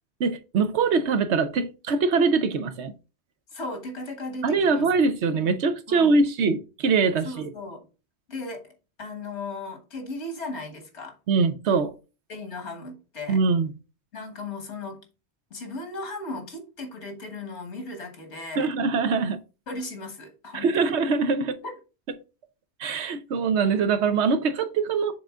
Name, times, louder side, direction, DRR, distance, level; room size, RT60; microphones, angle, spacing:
voice 1, 0.2-2.9 4.4-7.5 11.3-11.9 13.3-13.7 18.6-19.4 20.5-21.6 22.8-25.1, right 4 dB, 80° right, 1.1 m, -23 dB
voice 2, 3.5-4.9 5.9-6.1 7.2-7.9 8.3-8.7 9.0-11.2 12.3-13.4 14.1-15.0 15.5-18.7 19.7-20.9 21.4-21.7, left 2 dB, 90° left, 1.7 m, -36 dB
6.8 x 3.8 x 3.6 m
omnidirectional pair, 1.1 m